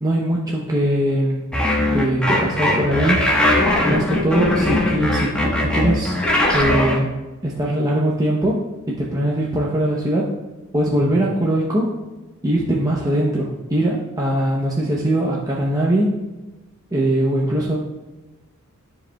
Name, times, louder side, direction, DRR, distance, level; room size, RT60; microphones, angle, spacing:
voice 1, 0.0-1.4 1.9-3.2 3.8-6.2 6.5-7.1 7.4-10.3 10.7-12.0 12.4-16.1 16.9-17.8, right 1 dB, 15° right, -4 dB, 0.7 m, -21 dB
sound 1, 1.5-7.0, left 1 dB, 5° left, 1.2 m, -19 dB
13.0 x 5.0 x 2.3 m, 1.1 s
head